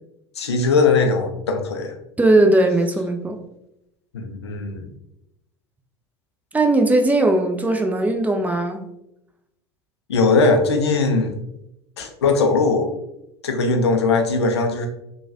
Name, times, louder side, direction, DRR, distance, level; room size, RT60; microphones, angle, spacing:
voice 1, 0.4-1.9 4.1-4.9 10.1-11.3 12.0-12.9 13.4-14.9, left 3 dB, 85° left, 4 dB, 0.4 m, -19 dB
voice 2, 2.2-3.4 6.5-8.8, right 2 dB, 10° right, 5 dB, 0.4 m, -18 dB
3.1 x 2.2 x 2.5 m, 0.84 s
hypercardioid pair, 70°, 14 cm